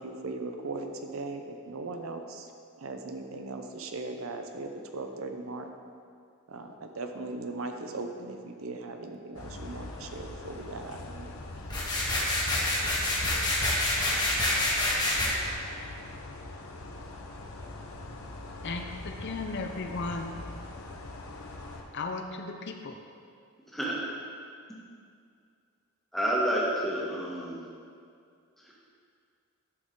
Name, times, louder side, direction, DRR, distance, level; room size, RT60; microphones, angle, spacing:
voice 1, 0.0-2.5 2.8-5.7 6.5-11.3, right 3 dB, 70° right, 5 dB, 0.7 m, -38 dB
sound 1, 9.3-21.8, left 2 dB, 80° left, 0.9 m, -42 dB
sound 2, 11.7-15.3, left 1 dB, 20° left, 1.5 m, -27 dB
voice 2, 18.6-20.3 21.9-23.0, left 3 dB, 55° left, 5 dB, 0.6 m, -35 dB
voice 3, 26.1-27.6, right 1 dB, ahead, -5 dB, 1.6 m, -29 dB
11.5 x 6.3 x 3.9 m, 2.3 s
head